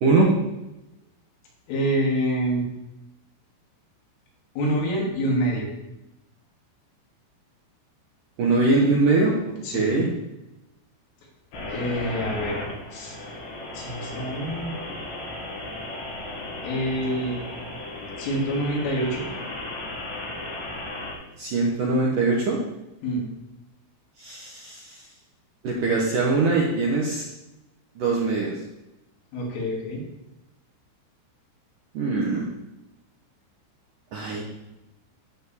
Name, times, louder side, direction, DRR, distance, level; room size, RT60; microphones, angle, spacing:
voice 1, 1.7-2.7 4.6-5.7 9.6-10.1 11.7-12.6 12.9-13.1 13.7-14.8 16.6-17.4 18.2-19.3 23.0-23.3 29.3-30.0, equal, 85° left, -3 dB, 5.4 m, -26 dB
voice 2, 8.4-10.1 21.4-22.6 24.2-25.0 25.6-27.2 28.0-28.5 31.9-32.5 34.1-34.4, right 3 dB, 65° right, -2 dB, 2.1 m, -22 dB
sound 1, 11.5-21.1, left 2 dB, 65° left, 4.9 m, -35 dB
13.5 x 5.3 x 7.3 m, 0.93 s
omnidirectional pair, 5.6 m